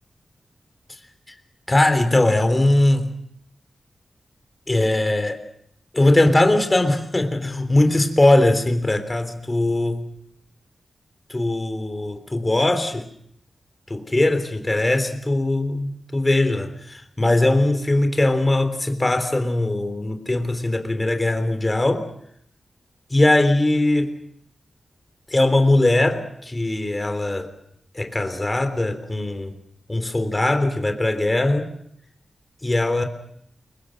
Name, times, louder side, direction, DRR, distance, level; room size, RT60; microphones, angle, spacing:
voice 1, 1.7-3.1 4.7-5.4 5.9-10.1 11.3-13.1 13.9-22.1 23.1-24.2 25.3-27.5 27.9-29.6 29.9-31.7 32.6-33.0, left 2 dB, 20° left, 7 dB, 3.4 m, -20 dB
29.0 x 24.0 x 6.5 m, 0.70 s
wide cardioid pair, 90°, 0 cm